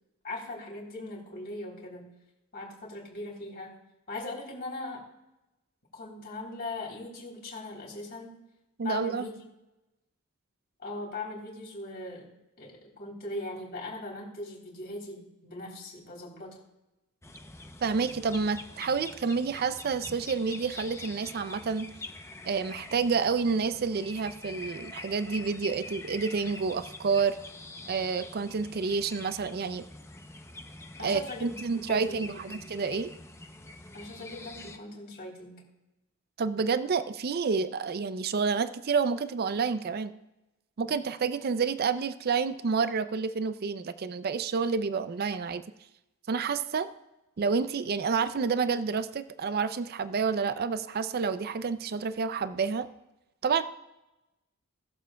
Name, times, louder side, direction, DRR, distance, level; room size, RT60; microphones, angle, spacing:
voice 1, 0.2-2.1 2.5-3.8 4.1-5.0 5.9-8.4 8.8-9.3 10.8-12.3 12.6-16.6 31.0-32.7 33.9-35.7, left 2 dB, 50° left, -3 dB, 3.3 m, -40 dB
voice 2, 8.8-9.3 17.8-21.9 22.5-27.4 27.9-29.8 31.0-33.1 36.4-40.1 40.8-45.6 46.3-46.9 47.4-52.9 53.4-53.6, right 5 dB, 50° right, 12 dB, 0.4 m, -29 dB
sound 1, 17.2-34.8, left 2 dB, 15° left, 0.7 m, -45 dB
20.0 x 7.4 x 2.3 m, 0.98 s
head